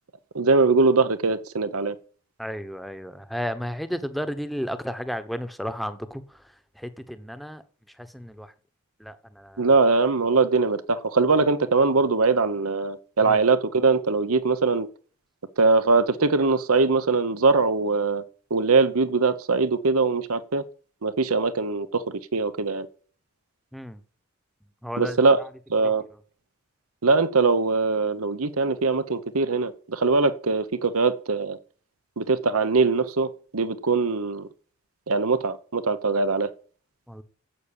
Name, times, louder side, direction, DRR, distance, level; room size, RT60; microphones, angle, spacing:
voice 1, 0.3-2.0 9.6-14.9 15.6-18.2 18.5-20.6 21.0-22.9 25.0-25.4 25.7-26.0 27.0-31.6 32.2-34.5 35.1-36.5, right 3 dB, 85° right, 1.0 m, -22 dB
voice 2, 2.4-8.5 9.0-9.7 13.2-13.4 23.7-24.0 24.8-25.5 25.8-26.2 37.1-37.2, equal, ahead, 0.9 m, -34 dB
11.5 x 8.4 x 8.8 m
head